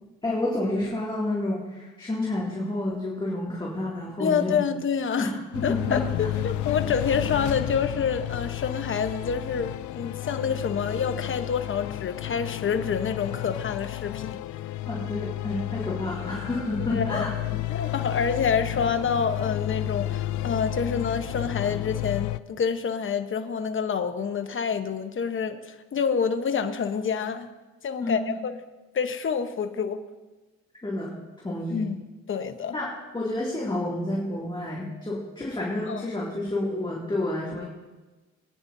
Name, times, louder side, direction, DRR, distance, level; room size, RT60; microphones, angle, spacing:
voice 1, 0.2-4.7 5.2-6.0 14.9-17.3 28.0-28.4 30.8-31.1 31.4-31.8 32.7-37.7, left 1 dB, 15° left, -4 dB, 2.4 m, -30 dB
voice 2, 4.2-5.3 5.6-14.4 16.9-27.5 27.8-28.6 28.9-30.0 31.7-32.0 32.3-32.8 35.9-36.0, left 6 dB, 40° left, 8 dB, 1.0 m, -27 dB
sound 1, 5.5-22.4, left 15 dB, 75° left, 0.5 m, -32 dB
22.0 x 9.7 x 2.7 m, 1.2 s
cardioid pair, 90°, 30 cm